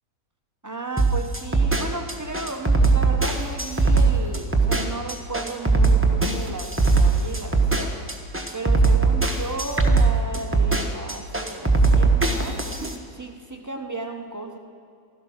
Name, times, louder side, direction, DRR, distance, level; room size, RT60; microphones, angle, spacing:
voice 1, 0.6-8.0 8.5-12.6 13.1-14.6, right 3 dB, 25° right, 4 dB, 0.4 m, -34 dB
sound 1, 1.0-12.9, right 3 dB, 10° right, 0.8 m, -20 dB
15.5 x 13.0 x 6.3 m, 2.3 s
omnidirectional pair, 1.9 m